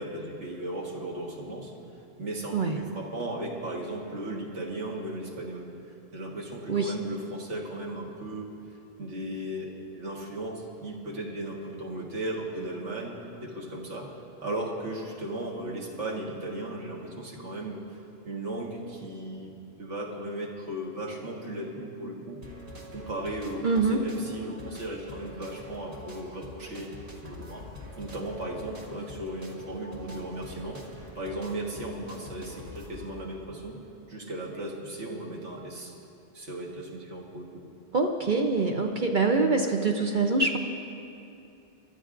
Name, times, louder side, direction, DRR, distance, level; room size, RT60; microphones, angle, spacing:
voice 1, 0.0-1.7 2.2-5.7 6.1-8.5 9.0-14.1 14.4-17.8 18.2-19.5 19.8-22.4 22.9-26.9 27.2-27.6 28.0-30.8 31.2-33.8 34.1-35.9 36.3-37.6, right 1 dB, 80° right, -1 dB, 1.9 m, -36 dB
sound 1, 22.4-33.1, left 1 dB, 35° right, 1.7 m, -45 dB
voice 2, 23.6-24.0 37.9-40.6, right 3 dB, 50° right, 3 dB, 0.8 m, -24 dB
27.0 x 12.5 x 2.5 m, 2.6 s
omnidirectional pair, 1.2 m